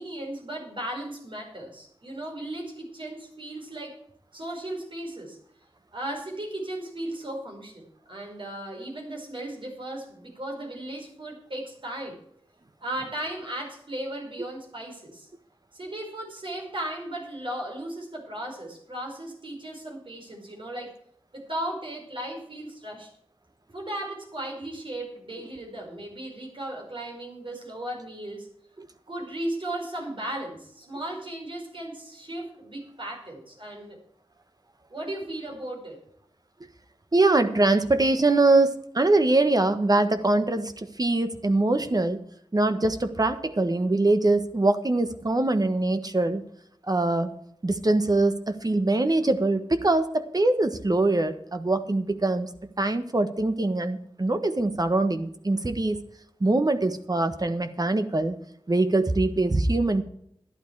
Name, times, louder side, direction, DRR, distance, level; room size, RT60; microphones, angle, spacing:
voice 1, 0.0-4.0 4.3-5.4 5.9-12.2 12.8-15.3 15.7-20.9 21.3-23.1 23.7-28.5 29.1-34.0 34.9-36.0, right 1 dB, 60° right, 0 dB, 5.1 m, -36 dB
voice 2, 37.1-42.2 42.5-46.4 46.9-47.3 47.6-52.5 52.8-56.0 56.4-58.4 58.7-60.0, right 2 dB, 40° right, 9 dB, 1.4 m, -23 dB
12.0 x 11.5 x 4.8 m, 0.70 s
wide cardioid pair, 50°, 10 cm